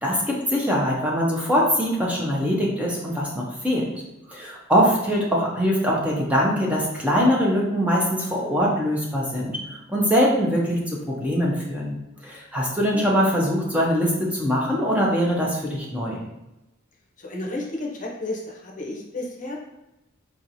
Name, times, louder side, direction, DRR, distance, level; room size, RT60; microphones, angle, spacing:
voice 1, 0.0-3.9 4.3-9.5 9.9-10.8 11.2-11.9 12.2-16.2, equal, 5° right, -4 dB, 0.6 m, -22 dB
voice 2, 17.2-19.6, left 2 dB, 40° left, -1 dB, 0.7 m, -32 dB
4.7 x 2.9 x 2.6 m, 0.96 s
head